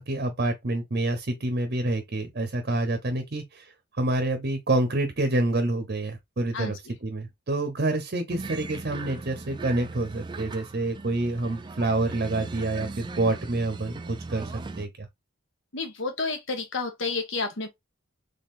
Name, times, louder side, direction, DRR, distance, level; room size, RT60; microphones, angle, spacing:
voice 1, 0.0-15.1, right 2 dB, 45° right, 0.8 m, -28 dB
sound 1, 8.3-14.9, right 3 dB, 20° right, 0.3 m, -38 dB
voice 2, 15.7-17.7, left 3 dB, 60° left, 1.2 m, -30 dB
3.7 x 3.4 x 2.5 m
head